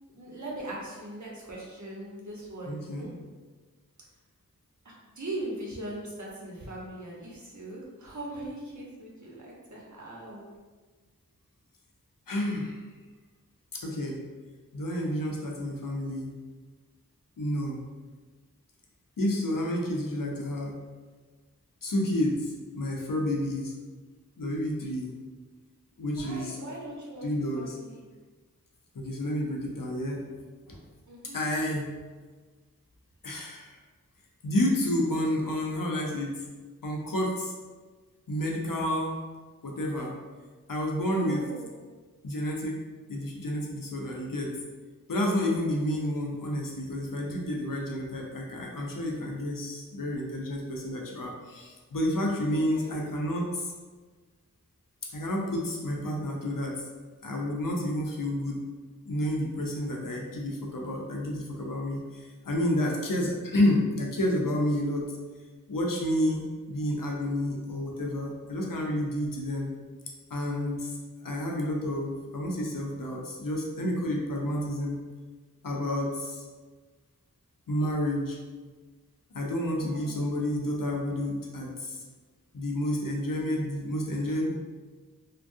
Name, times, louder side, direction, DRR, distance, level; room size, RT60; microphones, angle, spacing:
voice 1, 0.1-3.1 4.8-10.5 26.1-27.3 27.5-28.1 31.1-31.5 41.2-41.7 52.5-53.0 79.7-80.2, right 1 dB, 60° right, -4 dB, 0.9 m, -40 dB
voice 2, 2.7-3.1 12.3-12.8 13.7-14.2 14.7-16.3 17.4-17.8 19.2-20.7 21.8-23.7 24.4-25.1 26.0-26.6 27.2-27.8 28.9-30.3 30.7-30.8 31.3-31.9 33.2-33.7 34.4-36.4 36.8-37.5 38.3-39.2 39.6-40.2 40.7-41.5 42.2-42.8 43.1-44.6 45.1-53.7 55.1-56.8 57.2-58.6 59.1-65.1 65.7-69.7 70.3-71.0 71.2-75.0 75.6-76.4 77.7-78.4 79.3-82.0 82.5-84.5, left 1 dB, 75° left, -1 dB, 0.6 m, -30 dB
3.3 x 2.2 x 2.6 m, 1.4 s
wide cardioid pair, 45°, 34 cm